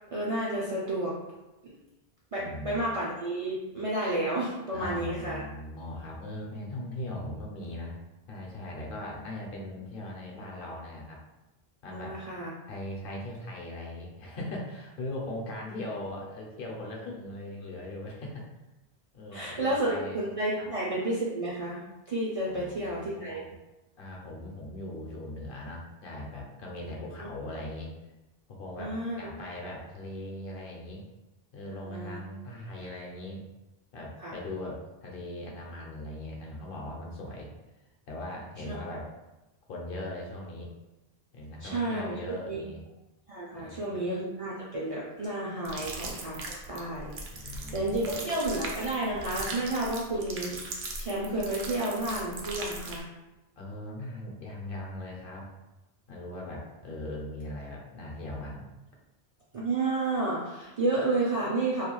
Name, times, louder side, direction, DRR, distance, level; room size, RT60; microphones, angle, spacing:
voice 1, 0.1-1.1 2.3-5.4 11.9-12.5 19.3-21.8 22.1-23.4 27.2-27.3 28.8-29.2 31.8-32.2 34.2-34.4 38.7-38.8 41.6-42.2 42.5-42.6 43.3-47.1 47.4-50.6 51.0-53.0 59.5-61.9, right 2 dB, 50° right, -6 dB, 0.4 m, -31 dB
voice 2, 2.4-3.0 4.7-8.0 8.3-11.2 11.8-12.2 12.7-18.5 19.1-20.2 20.6-20.7 22.5-23.5 24.0-27.9 28.5-31.0 31.5-33.4 33.9-37.5 38.1-39.1 39.7-40.7 41.3-42.8 43.5-44.0 45.8-45.9 47.3-48.2 53.6-55.6 56.1-58.7, left 1 dB, 65° left, -2 dB, 0.7 m, -39 dB
sound 1, 45.6-53.0, right 3 dB, 85° right, 0.8 m, -39 dB
2.4 x 2.2 x 2.9 m, 1.0 s
omnidirectional pair, 1.0 m